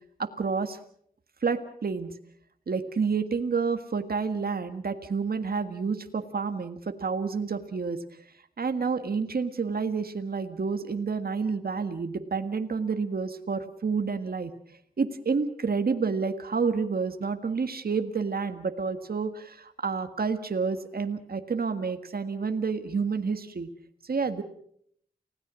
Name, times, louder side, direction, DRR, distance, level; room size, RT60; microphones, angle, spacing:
voice 1, 0.2-0.8 1.4-2.1 2.7-8.0 8.6-14.5 15.0-23.7 24.0-24.4, right 5 dB, 70° right, 7 dB, 1.7 m, -29 dB
29.5 x 17.5 x 6.3 m, 0.66 s
wide cardioid pair, 75°, 16 cm